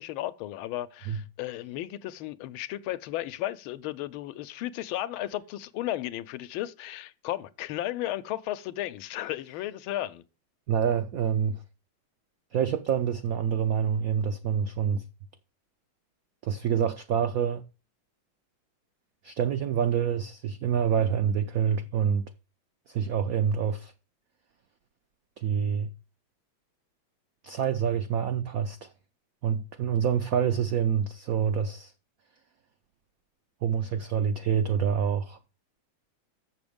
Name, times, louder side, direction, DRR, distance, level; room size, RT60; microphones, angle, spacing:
voice 1, 0.0-10.2, left 14 dB, 85° left, 1.4 m, -34 dB
voice 2, 10.7-11.6 12.5-15.0 16.4-17.6 19.2-22.3 22.9-23.9 25.4-25.9 27.4-28.9 29.4-31.9 33.6-35.4, right 8 dB, 85° right, 0.7 m, -27 dB
7.0 x 6.8 x 5.1 m
omnidirectional pair, 2.2 m